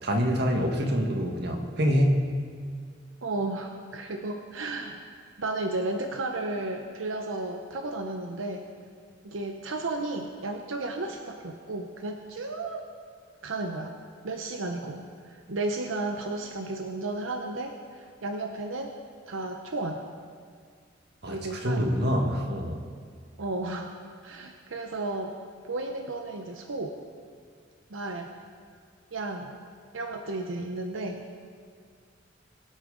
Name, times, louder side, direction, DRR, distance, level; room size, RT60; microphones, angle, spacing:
voice 1, 0.0-2.3 21.2-22.8, equal, 55° right, 2 dB, 1.6 m, -26 dB
voice 2, 3.2-5.0 5.4-8.7 9.2-12.9 13.4-14.0 14.2-18.9 19.3-20.0 21.3-21.9 23.4-23.9 24.2-25.4 25.6-27.0 27.9-28.3 29.1-29.6 29.9-31.3, right 2 dB, 90° right, 4 dB, 0.8 m, -33 dB
22.5 x 8.4 x 3.9 m, 2.1 s
head